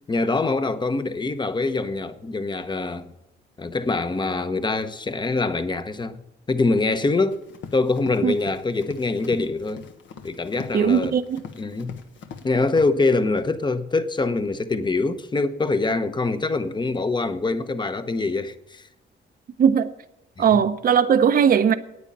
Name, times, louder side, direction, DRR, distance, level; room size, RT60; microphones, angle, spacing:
voice 1, 0.1-3.1 3.6-6.2 6.5-7.4 7.7-9.9 10.2-11.2 11.6-12.0 12.4-18.8 20.4-20.6, left 3 dB, 20° left, 0.9 m, -24 dB
Run, 7.3-12.5 12.8-12.9, left 6 dB, 70° left, 1.3 m, -41 dB
voice 2, 10.7-11.4 19.6-19.9 20.4-21.7, right 7 dB, 45° right, 0.7 m, -18 dB
9.6 x 9.0 x 8.5 m
cardioid pair, 90°, 20 cm